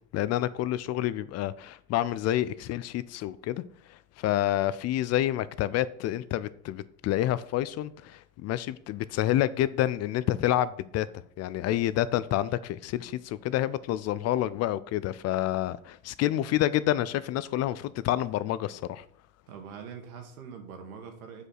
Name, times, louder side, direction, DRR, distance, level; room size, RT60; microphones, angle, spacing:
voice 1, 0.1-3.6 3.9-11.1 11.4-19.0, left 13 dB, 40° left, 0.4 m, -28 dB
voice 2, 19.5-21.5, right 6 dB, 85° right, 2.1 m, -43 dB
7.4 x 5.0 x 6.5 m
supercardioid pair, 105°, 42 cm